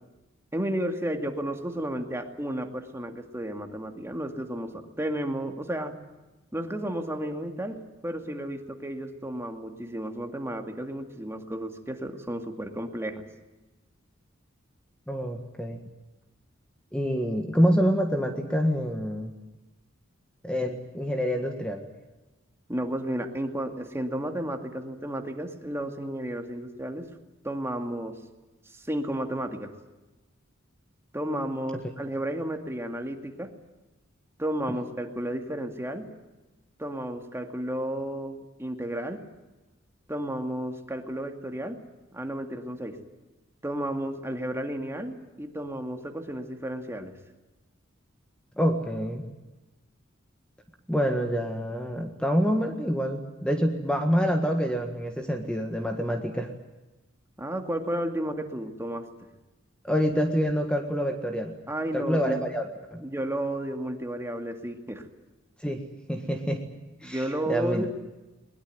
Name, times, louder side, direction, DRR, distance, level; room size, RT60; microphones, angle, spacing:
voice 1, 0.5-5.9 6.5-13.2 22.7-27.1 27.4-28.2 28.7-29.7 31.1-33.5 34.4-36.1 36.8-39.2 40.1-41.8 42.1-43.0 43.6-47.1 57.4-59.1 61.7-62.4 63.0-65.1 67.0-67.9, right 1 dB, 15° right, 5 dB, 2.2 m, -32 dB
voice 2, 15.1-15.8 16.9-19.3 20.4-21.9 48.6-49.3 50.9-56.5 59.8-61.6 61.9-63.0 65.6-65.8 66.1-66.6 67.0-67.9, equal, 5° left, 4 dB, 1.7 m, -27 dB
21.5 x 21.0 x 9.2 m, 1.1 s
head